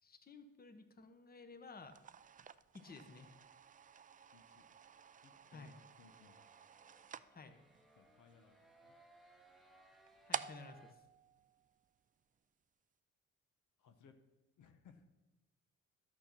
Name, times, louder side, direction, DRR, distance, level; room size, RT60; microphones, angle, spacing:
voice 1, 0.0-2.0 2.7-3.3 5.5-5.7 7.3-7.6 10.3-11.0, left 4 dB, 30° left, 8 dB, 1.1 m, -54 dB
sound 1, 1.8-12.2, right 7 dB, 30° right, 0.3 m, -51 dB
voice 2, 4.3-4.7 5.2-6.4 8.0-8.6 8.8-8.9 13.8-14.1 14.6-15.0, left 6 dB, 80° left, 6 dB, 1.0 m, -64 dB
sound 2, 4.8-10.9, right 1 dB, ahead, 0.9 m, -67 dB
12.0 x 6.3 x 6.0 m, 1.0 s
cardioid pair, 90°, 30 cm